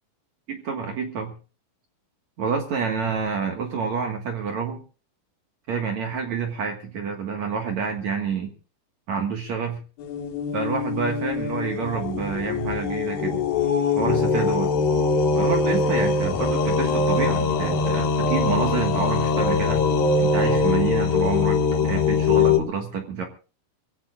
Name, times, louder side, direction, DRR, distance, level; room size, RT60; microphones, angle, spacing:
voice 1, 0.5-1.3 2.4-4.8 5.7-8.5 9.1-9.8 10.5-13.4 14.0-14.7 15.3-19.9 20.2-23.2, right 6 dB, 55° right, 3 dB, 2.5 m, -28 dB
sound 1, 10.0-22.6, left 4 dB, 65° left, 3.3 m, -22 dB
25.0 x 16.0 x 2.4 m, 0.36 s
omnidirectional pair, 4.5 m